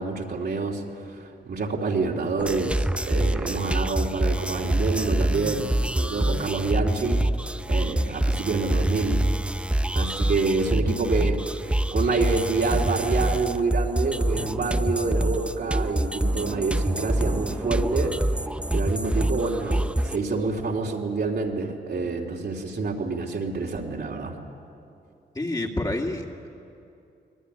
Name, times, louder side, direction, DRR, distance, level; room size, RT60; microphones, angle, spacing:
voice 1, 0.0-7.2 7.7-9.2 9.9-18.2 18.7-24.3, right 3 dB, 60° right, -1 dB, 3.3 m, -27 dB
sound 1, 2.4-20.2, right 1 dB, 5° right, 0.6 m, -26 dB
voice 2, 25.3-26.5, left 1 dB, 20° left, 0 dB, 2.3 m, -28 dB
24.0 x 19.5 x 9.9 m, 2.6 s
cardioid pair, 100°, 19 cm